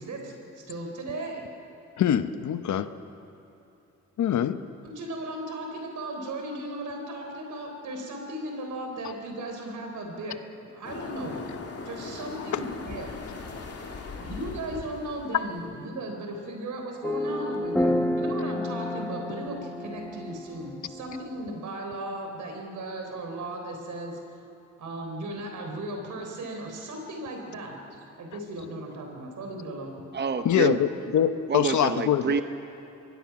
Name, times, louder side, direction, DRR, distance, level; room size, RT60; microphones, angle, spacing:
voice 1, 0.0-1.5 4.8-10.4 10.7-11.4 11.8-13.2 14.2-24.2 24.8-27.8 28.2-30.0, right 1 dB, 75° right, 2 dB, 3.9 m, -36 dB
voice 2, 2.0-2.9 4.2-4.7 9.0-9.1 12.4-12.6 13.6-13.7 14.1-14.2 30.4-32.4, left 9 dB, 75° left, 11 dB, 1.0 m, -25 dB
sound 1, 10.8-15.8, left 4 dB, 55° left, 2.7 m, -39 dB
sound 2, 17.0-21.5, left 1 dB, 5° left, 1.2 m, -30 dB
voice 3, 30.1-30.8 31.5-32.4, right 6 dB, 35° right, 9 dB, 0.8 m, -27 dB
24.5 x 20.0 x 6.0 m, 2.8 s
cardioid pair, 70°, 30 cm